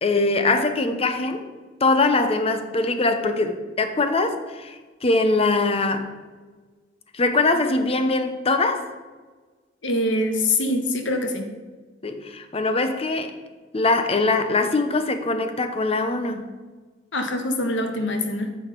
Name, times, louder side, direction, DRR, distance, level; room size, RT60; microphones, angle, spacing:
voice 1, 0.0-1.5 1.8-6.1 7.1-8.9 12.0-13.3 13.7-16.4, left 3 dB, 35° left, 8 dB, 0.8 m, -22 dB
voice 2, 9.8-11.5 17.1-18.5, left 1 dB, 85° left, 5 dB, 1.3 m, -24 dB
8.9 x 6.4 x 5.3 m, 1.4 s
head